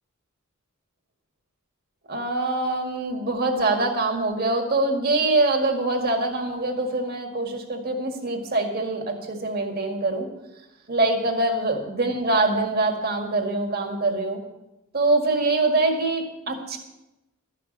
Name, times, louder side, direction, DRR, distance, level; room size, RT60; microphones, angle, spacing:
voice 1, 2.1-10.3 10.9-14.4 14.9-16.8, right 2 dB, 50° right, 3 dB, 1.9 m, -24 dB
13.0 x 6.0 x 8.7 m, 0.96 s
head